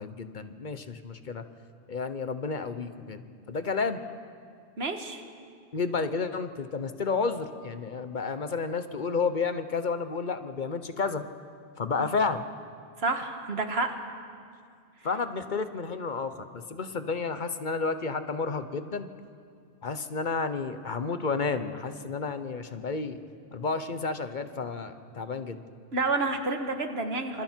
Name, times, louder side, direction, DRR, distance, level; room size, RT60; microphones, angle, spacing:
voice 1, 0.0-1.4 1.9-4.0 5.7-11.2 11.8-12.4 15.0-19.1 19.8-23.2 23.5-25.6, left 4 dB, 45° left, 10 dB, 1.0 m, -31 dB
voice 2, 4.8-5.2 13.0-13.9 25.9-27.4, right 3 dB, 65° right, 6 dB, 1.8 m, -29 dB
26.5 x 26.5 x 4.5 m, 2.2 s
omnidirectional pair, 1.1 m